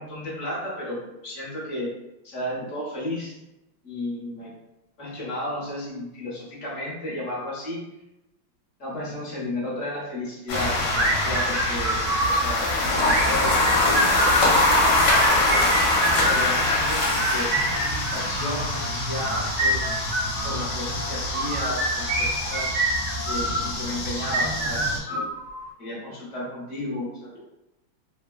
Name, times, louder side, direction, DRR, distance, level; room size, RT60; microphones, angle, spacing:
voice 1, 0.0-1.9 2.2-3.4 3.8-4.5 5.0-7.8 8.8-10.8 11.2-15.6 16.1-19.9 20.4-22.7 23.2-25.3 25.8-27.4, left 1 dB, 50° left, -6 dB, 0.9 m, -33 dB
sound 1, 10.5-25.0, left 1 dB, 70° left, 1.2 m, -24 dB
sound 2, 10.9-12.5 13.0-14.5 15.0-16.5 17.0-18.6 19.2-20.6 21.3-23.6 24.2-25.7, right 1 dB, 80° right, 1.3 m, -26 dB
Piano arp, 12.5-24.0, left 5 dB, 25° left, 0.7 m, -42 dB
3.2 x 2.1 x 2.2 m, 0.92 s
omnidirectional pair, 2.2 m